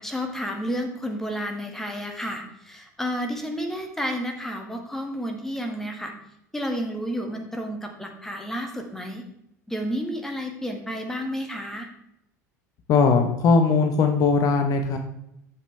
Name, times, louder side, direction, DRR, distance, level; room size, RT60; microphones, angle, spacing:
voice 1, 0.0-6.1 6.5-9.2 9.7-11.9, equal, 5° left, 3 dB, 1.7 m, -31 dB
voice 2, 12.9-15.0, left 4 dB, 40° left, 6 dB, 1.1 m, -19 dB
11.0 x 7.5 x 3.3 m, 0.80 s
figure-of-eight pair, 75°, 9 cm